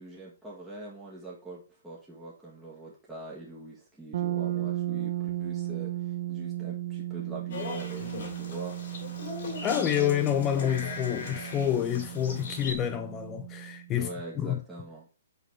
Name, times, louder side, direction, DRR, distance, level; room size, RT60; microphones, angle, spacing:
voice 1, 0.0-8.8 13.9-15.1, right 2 dB, 5° right, 1.6 m, -43 dB
sound 1, 4.1-13.9, right 14 dB, 60° right, 0.6 m, -35 dB
sound 2, 7.5-12.8, left 4 dB, 60° left, 3.1 m, -39 dB
voice 2, 9.6-14.1 14.4-14.6, left 10 dB, 25° left, 0.5 m, -28 dB
5.3 x 4.1 x 4.5 m
hypercardioid pair, 135°, 0 cm